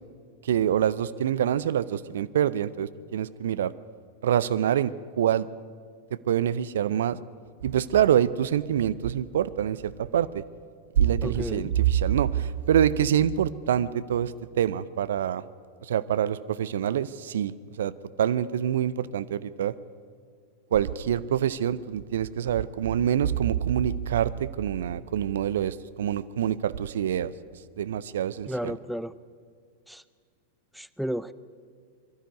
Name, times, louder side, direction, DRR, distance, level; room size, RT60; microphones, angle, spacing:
voice 1, 0.4-3.7 4.2-5.5 6.3-7.2 7.6-10.4 11.0-15.4 15.8-17.9 18.2-19.7 20.7-27.3 27.8-28.8, right 10 dB, 60° right, 17 dB, 0.5 m, -25 dB
voice 2, 11.2-11.7 28.5-29.1 29.9-30.0 30.7-31.3, equal, ahead, 16 dB, 0.5 m, -32 dB
22.0 x 12.5 x 9.3 m, 2.1 s
figure-of-eight pair, 90°, 0 cm